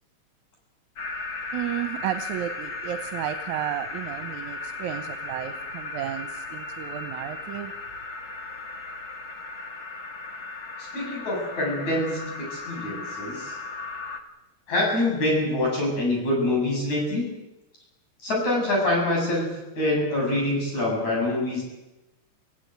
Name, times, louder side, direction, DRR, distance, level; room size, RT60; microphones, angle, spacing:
sound 1, 0.9-14.2, left 3 dB, 45° left, 2.4 m, -36 dB
voice 1, 1.5-7.7, right 12 dB, 75° right, 9 dB, 2.3 m, -32 dB
voice 2, 10.8-13.6 14.7-17.3 18.2-19.5 19.8-21.6, left 1 dB, 65° left, -1 dB, 9.2 m, -25 dB
26.0 x 15.5 x 9.3 m, 1.0 s
omnidirectional pair, 3.4 m